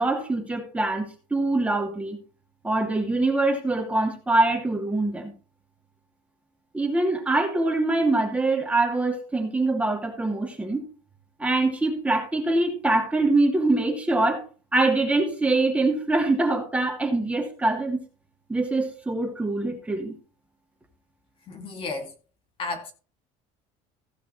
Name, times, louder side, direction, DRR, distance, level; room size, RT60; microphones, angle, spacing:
voice 1, 0.0-2.2 2.6-5.3 6.7-10.9 11.4-14.4 14.7-18.0 18.5-20.2, right 2 dB, 10° right, 2.4 m, -24 dB
voice 2, 21.5-22.1 22.6-22.9, left 3 dB, 40° left, 2.4 m, -33 dB
16.0 x 5.7 x 4.3 m
cardioid pair, 140°, 14 cm